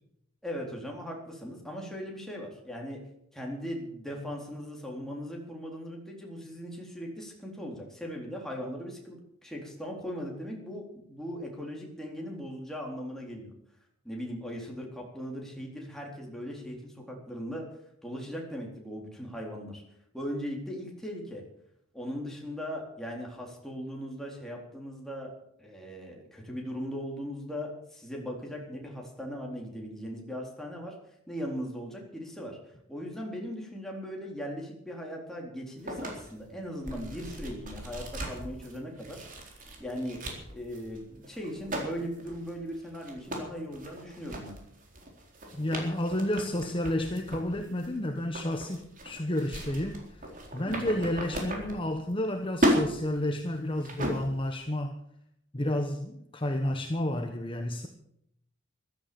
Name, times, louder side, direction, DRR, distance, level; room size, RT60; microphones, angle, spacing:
voice 1, 0.4-3.0 3.3-13.5 14.0-17.7 18.0-19.8 20.1-21.4 21.9-25.3 25.6-31.0 31.3-32.6 32.9-39.2 39.8-40.2 40.5-44.5 50.6-50.9, equal, ahead, 3.9 m, -39 dB
sound 1, 35.9-52.3 52.5-54.5, equal, 40° right, 3.9 m, -35 dB
voice 2, 45.5-50.2 50.5-55.0 55.5-57.9, left 1 dB, 25° left, 1.2 m, -31 dB
15.0 x 13.5 x 7.0 m
head